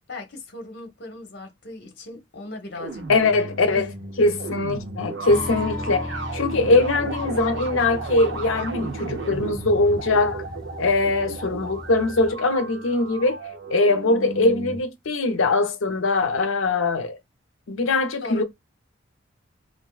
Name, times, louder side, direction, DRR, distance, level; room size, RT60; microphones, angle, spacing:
voice 1, 0.1-3.9 5.5-5.7 18.2-18.4, left 2 dB, 55° left, 1.0 m, -38 dB
sound 1, 2.7-14.8, right 3 dB, 60° right, 0.6 m, -34 dB
voice 2, 3.1-3.9 4.2-10.4 10.8-13.4 13.7-17.2 17.7-18.4, left 2 dB, 80° left, 0.6 m, -22 dB
sound 2, 5.3-12.3, equal, 5° left, 0.4 m, -36 dB
3.4 x 2.5 x 2.3 m
head